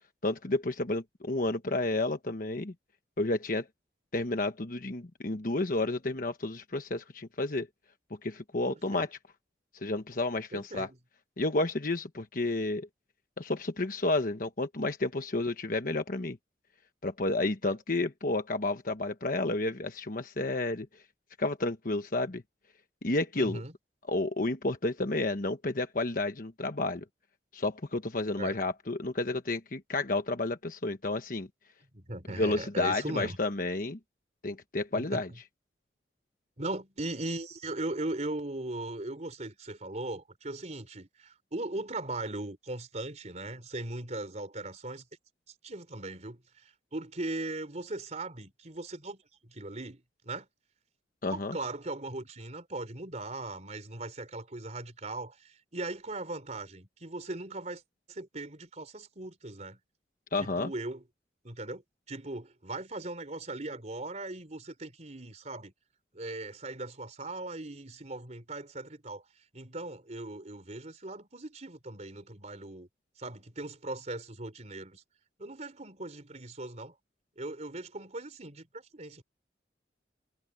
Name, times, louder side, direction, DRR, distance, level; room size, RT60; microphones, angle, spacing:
voice 1, 0.2-2.7 3.2-3.7 4.1-7.7 8.2-9.2 9.7-10.9 11.4-12.9 13.4-16.4 17.0-21.0 21.4-22.4 23.0-23.6 24.1-27.0 27.5-31.5 32.3-34.0 34.4-35.3 51.2-51.6 60.3-60.7, left 2 dB, 50° left, 1.2 m, -31 dB
voice 2, 8.7-9.1 10.5-11.0 17.6-17.7 23.4-23.7 28.4-28.6 31.9-33.4 34.9-35.2 36.6-45.0 45.6-50.5 51.3-57.8 58.1-59.8 60.4-61.0 61.4-61.8 62.1-65.7 66.1-69.2 69.5-72.9 73.2-75.0 75.4-76.9 77.4-79.2, right 2 dB, 40° right, 3.9 m, -39 dB
head